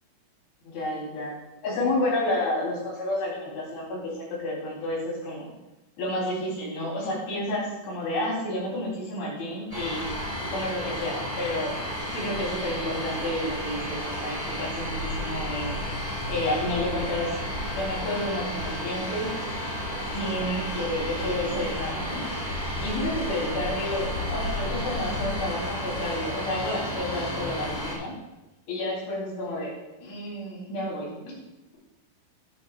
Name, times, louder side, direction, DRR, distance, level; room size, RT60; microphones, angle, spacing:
voice 1, 0.6-1.3 1.6-5.5 6.0-10.2 10.5-15.8 16.3-17.4 17.8-19.3 20.1-22.2 22.8-28.1 28.7-29.7 30.0-31.4, left 1 dB, 70° left, -5 dB, 6.0 m, -30 dB
sound 1, 9.7-27.9, equal, 15° left, 1.6 m, -32 dB
11.0 x 11.0 x 2.5 m, 0.97 s
omnidirectional pair, 5.7 m